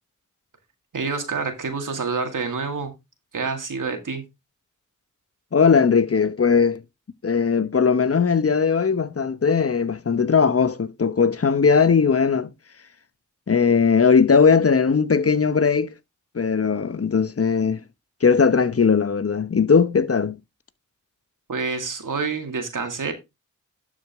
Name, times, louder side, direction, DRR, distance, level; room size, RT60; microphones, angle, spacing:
voice 1, 0.9-2.9 3.3-4.2 21.5-23.1, right 4 dB, 85° right, 2.1 m, -27 dB
voice 2, 5.5-6.8 7.2-12.5 13.5-15.9 16.3-17.8 18.2-20.4, left 5 dB, 50° left, 0.9 m, -19 dB
11.5 x 5.0 x 3.5 m
cardioid pair, 45°, 31 cm